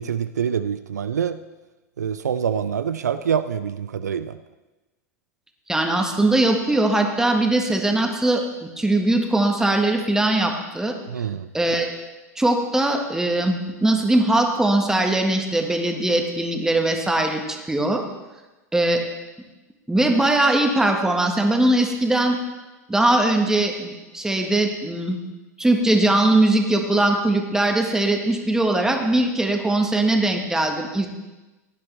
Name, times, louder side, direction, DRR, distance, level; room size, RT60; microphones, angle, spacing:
voice 1, 0.0-1.4 2.0-4.4 11.1-11.5, right 8 dB, 75° right, 12 dB, 0.4 m, -25 dB
voice 2, 5.7-11.0 11.5-11.9 12.4-18.0 18.7-19.0 19.9-22.4 22.9-25.2 25.6-31.1, right 2 dB, 5° right, 3 dB, 1.6 m, -20 dB
16.5 x 10.5 x 3.4 m, 1.1 s
figure-of-eight pair, 90°, 9 cm